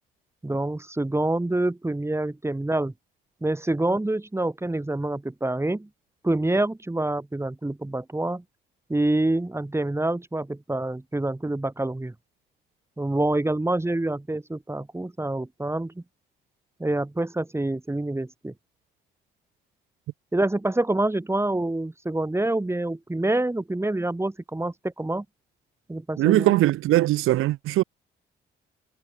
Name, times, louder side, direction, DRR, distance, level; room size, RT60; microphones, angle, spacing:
voice 1, 0.4-2.9 3.4-5.9 6.2-8.4 8.9-12.1 13.0-16.0 16.8-18.5 20.3-25.3 25.9-26.6, right 2 dB, 10° right, 1.9 m, -26 dB
voice 2, 26.2-27.8, right 16 dB, 75° right, 1.2 m, -20 dB
supercardioid pair, 60°, 21 cm